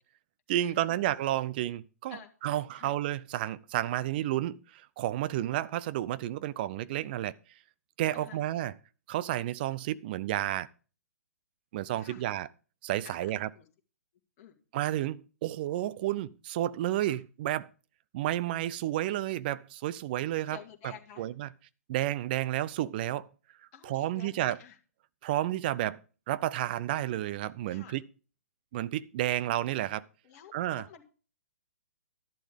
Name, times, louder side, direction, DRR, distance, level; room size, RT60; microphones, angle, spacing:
voice 1, 0.5-2.2 2.4-7.3 8.0-8.7 9.1-10.7 11.7-12.5 12.8-13.5 14.7-17.7 18.1-20.6 21.2-21.5 21.9-23.3 23.8-24.6 25.2-26.0 26.3-28.0 28.7-30.0 30.5-30.8, right 13 dB, 40° right, 0.5 m, -31 dB
voice 2, 2.1-2.9 8.1-8.4 12.0-12.3 13.0-13.7 14.4-14.6 17.1-17.2 20.5-21.3 23.7-24.8 27.7-28.0 30.2-31.0, left 8 dB, 35° left, 2.0 m, -51 dB
11.5 x 11.5 x 3.6 m
figure-of-eight pair, 120°, 8 cm